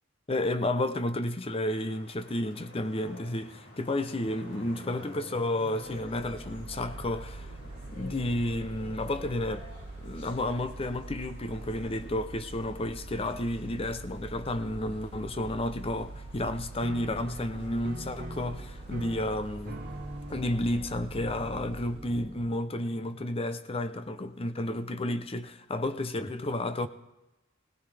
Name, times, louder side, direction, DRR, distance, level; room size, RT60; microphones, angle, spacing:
voice 1, 0.3-7.5 7.9-9.7 10.0-19.8 20.3-26.9, left 1 dB, 30° left, 0.7 m, -31 dB
sound 1, 1.7-21.0, left 1 dB, 65° left, 4.8 m, -51 dB
Mechanical fan, 5.8-22.7, right 2 dB, 30° right, 1.9 m, -44 dB
Piano, 16.8-23.6, right 1 dB, 50° right, 1.3 m, -44 dB
18.5 x 18.0 x 3.4 m
head